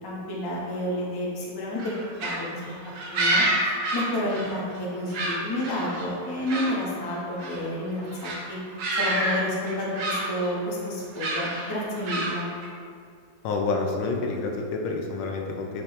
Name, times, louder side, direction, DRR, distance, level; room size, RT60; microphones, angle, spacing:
voice 1, 0.0-1.9 2.2-2.6 3.1-8.6 9.0-12.5, left 1 dB, 20° left, -4 dB, 0.6 m, -30 dB
sound 1, 1.8-4.8 5.1-6.8 7.0-7.7 8.1-8.4 8.8-9.4 9.7-10.6 11.2-12.7, right 1 dB, 80° right, 1.5 m, -28 dB
voice 2, 13.4-15.8, left 3 dB, 85° left, 1 dB, 1.4 m, -28 dB
6.7 x 2.9 x 5.0 m, 2.3 s
omnidirectional pair, 2.0 m